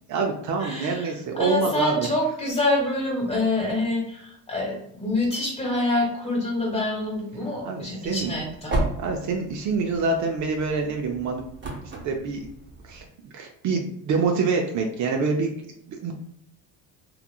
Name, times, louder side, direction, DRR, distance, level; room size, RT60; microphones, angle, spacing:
voice 1, 0.0-2.1 7.7-8.3 9.0-11.4 12.0-12.5 12.8-13.0 13.3-15.5 15.9-16.1, right 4 dB, 55° right, 2 dB, 0.5 m, -26 dB
voice 2, 0.6-8.8, left 2 dB, 15° left, -2 dB, 1.1 m, -26 dB
sound 1, 8.0-13.1, right 2 dB, 30° right, 0.8 m, -34 dB
3.0 x 2.4 x 2.2 m, 0.72 s
cardioid pair, 115°, 36 cm